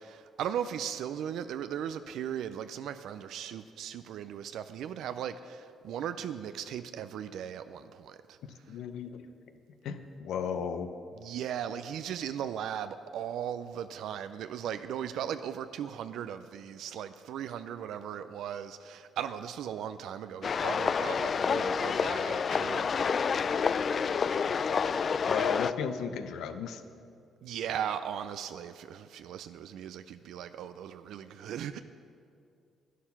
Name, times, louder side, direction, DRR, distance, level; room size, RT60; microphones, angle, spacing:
voice 1, 0.0-8.4 11.2-22.9 27.4-31.8, right 9 dB, 80° right, 11 dB, 0.4 m, -37 dB
voice 2, 8.7-9.3 9.8-10.9 24.4-24.6 25.2-26.8, left 6 dB, 80° left, 9 dB, 0.7 m, -35 dB
sound 1, 20.4-25.7, left 6 dB, 45° left, 0.3 m, -28 dB
11.0 x 9.8 x 5.8 m, 2.4 s
cardioid pair, 90°, 0 cm